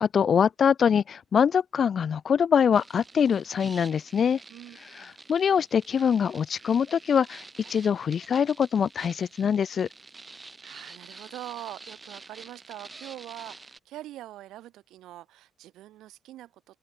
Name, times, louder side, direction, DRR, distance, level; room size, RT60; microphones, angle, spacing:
voice 1, 0.0-4.4 5.3-9.9, left 7 dB, 50° left, 0.5 m, -24 dB
sound 1, 2.7-13.8, right 3 dB, 25° right, 1.7 m, -48 dB
voice 2, 4.5-5.1 10.6-16.8, right 14 dB, 85° right, 2.2 m, -43 dB
open air
cardioid pair, 90°, 0 cm